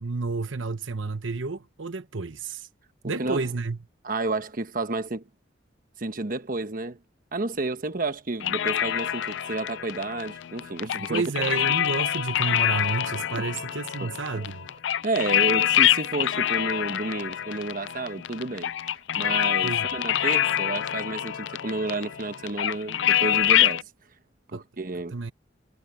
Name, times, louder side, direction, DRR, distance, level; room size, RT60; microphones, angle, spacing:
voice 1, 0.0-2.7 3.0-3.8 11.1-14.6 19.6-19.9 24.5-24.6 25.1-25.3, right 3 dB, 85° right, 1.1 m, -30 dB
voice 2, 3.2-3.5 4.0-5.2 6.0-7.0 7.3-11.2 13.3-13.4 14.0-14.5 15.0-18.7 19.2-23.9 24.5-25.2, right 2 dB, 45° right, 1.1 m, -31 dB
sound 1, 8.4-23.8, left 11 dB, 70° left, 0.4 m, -26 dB
head